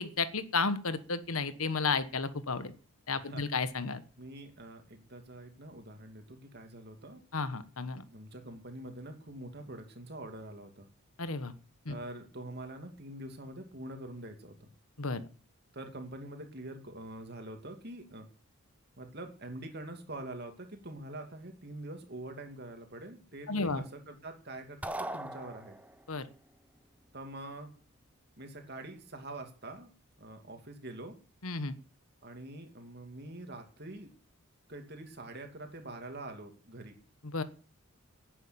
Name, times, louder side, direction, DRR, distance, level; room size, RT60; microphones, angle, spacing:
voice 1, 0.0-2.7 3.1-4.0 7.3-8.0 11.2-11.5 11.8-12.0 15.0-15.3 23.5-23.8 26.1-26.3 31.4-31.7 37.3-37.4, left 4 dB, 75° left, 12 dB, 1.3 m, -32 dB
voice 2, 3.2-3.5 4.2-7.2 8.1-10.9 11.9-14.7 15.7-18.3 19.0-25.8 27.1-27.7 28.4-29.9 30.2-31.2 32.2-34.1 34.7-36.9, right 1 dB, 45° right, 5 dB, 2.6 m, -45 dB
sound 1, 24.8-26.1, right 1 dB, 5° right, 0.7 m, -39 dB
11.0 x 9.3 x 8.8 m, 0.40 s
head